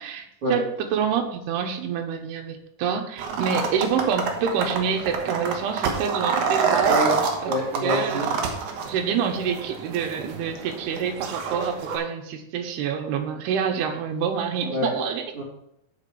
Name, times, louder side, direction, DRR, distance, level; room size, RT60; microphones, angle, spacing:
voice 1, 0.0-7.0 7.4-7.5 7.8-8.3 8.9-15.2, right 7 dB, 85° right, 5 dB, 3.0 m, -27 dB
sound 1, 3.2-12.0, right 5 dB, 65° right, 2.1 m, -27 dB
voice 2, 6.8-8.3 14.7-14.9 15.3-15.4, left 1 dB, 35° right, -5 dB, 3.9 m, -26 dB
8.0 x 5.1 x 7.1 m, 0.79 s
omnidirectional pair, 4.5 m